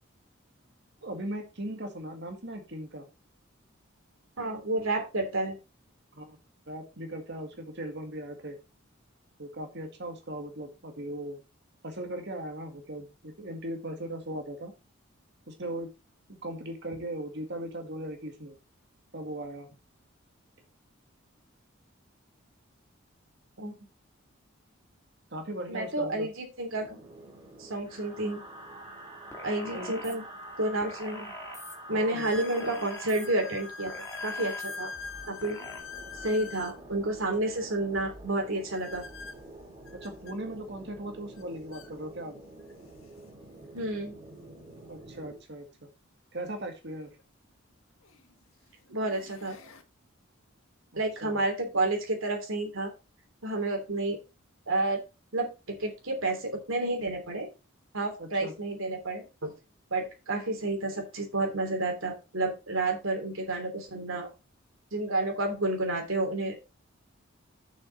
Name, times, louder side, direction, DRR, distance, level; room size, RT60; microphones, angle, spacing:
voice 1, 1.0-3.1 6.1-6.4 6.7-8.6 9.4-11.4 11.8-14.7 15.5-15.9 16.3-18.6 19.1-19.7 25.3-26.3 29.7-30.1 31.9-32.3 40.0-42.4 44.9-45.9 46.3-47.1 51.2-51.4 58.2-58.5, right 1 dB, 55° right, 5 dB, 2.0 m, -38 dB
voice 2, 4.4-5.6 23.6-23.7 25.7-27.0 27.6-28.4 29.4-30.2 30.6-31.3 31.9-33.9 34.2-34.9 35.3-35.6 36.2-39.0 43.7-44.1 48.9-49.6 51.0-52.9 53.4-54.2 54.7-55.0 55.3-57.5 57.9-59.5 59.9-64.3 64.9-66.6, right 2 dB, 80° right, 3 dB, 3.1 m, -30 dB
sound 1, 26.7-45.4, right 1 dB, 25° right, 3.5 m, -48 dB
sound 2, 29.3-30.1 30.8-31.7 32.3-33.3 33.9-34.8 35.4-35.8, left 1 dB, 15° left, 2.2 m, -44 dB
sound 3, 30.4-30.5 31.2-31.3 32.1-36.8 38.7-40.4 41.4-41.5 41.7-41.9 42.7-42.8 45.0-45.1 47.2-47.3 48.0-48.3 48.9-49.8, left 4 dB, 85° left, 1.6 m, -43 dB
7.3 x 6.3 x 5.2 m, 0.28 s
head